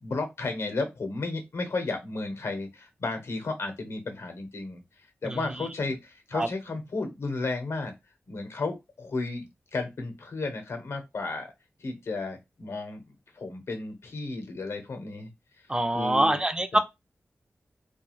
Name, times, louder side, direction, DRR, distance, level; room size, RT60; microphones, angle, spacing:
voice 1, 0.0-4.8 5.2-7.9 8.3-11.5 11.8-15.3 15.9-16.4 16.7-16.8, left 3 dB, 85° left, 0.7 m, -33 dB
voice 2, 5.2-5.7 6.3-6.5 15.7-16.8, right 1 dB, 20° right, 0.3 m, -25 dB
2.3 x 2.3 x 3.0 m
wide cardioid pair, 120°, 4 cm